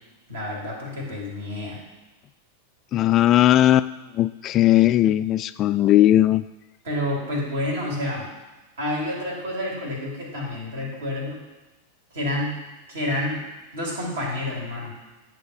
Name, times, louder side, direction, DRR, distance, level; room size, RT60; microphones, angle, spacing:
voice 1, 0.3-1.8 6.8-8.3 8.8-11.4 12.1-12.5 12.9-13.4 13.7-15.0, left 1 dB, 65° right, -2 dB, 2.6 m, -29 dB
voice 2, 2.9-3.9 4.1-6.4, left 13 dB, 35° left, 14 dB, 0.3 m, -18 dB
10.5 x 3.6 x 6.9 m, 1.1 s
figure-of-eight pair, 90°, 0 cm